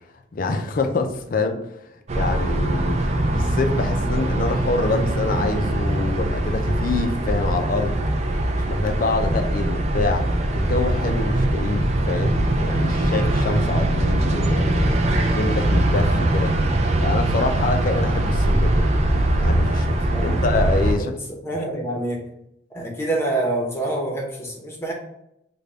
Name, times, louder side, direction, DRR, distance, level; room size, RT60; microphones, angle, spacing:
voice 1, 0.3-1.6 2.1-3.0 3.3-8.0 8.5-10.3 10.5-15.0 15.3-16.5 17.0-18.8 19.4-20.0 20.2-21.2, left 3 dB, 45° left, 5 dB, 0.4 m, -26 dB
sound 1, 2.1-20.9, right 1 dB, 35° right, 0.4 m, -21 dB
voice 2, 21.4-22.2 22.7-24.9, right 2 dB, 15° left, -1 dB, 0.7 m, -26 dB
3.4 x 2.2 x 3.8 m, 0.79 s
head